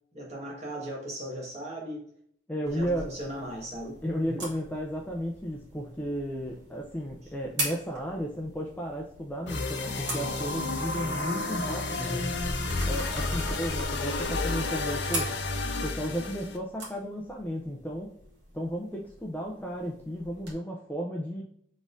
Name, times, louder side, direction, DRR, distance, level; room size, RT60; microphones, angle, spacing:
voice 1, 0.1-2.0 2.6-4.0 4.3-4.5 13.2-13.5, right 1 dB, 35° right, -2 dB, 1.4 m, -38 dB
voice 2, 2.5-3.1 4.0-12.3 12.9-15.3 15.8-18.1 18.5-21.4, equal, 10° left, 0 dB, 0.4 m, -34 dB
sound 1, 2.7-20.5, right 2 dB, 65° right, 1.5 m, -42 dB
sound 2, 9.5-16.6, left 3 dB, 60° left, 0.7 m, -31 dB
4.1 x 3.6 x 2.5 m, 0.65 s
head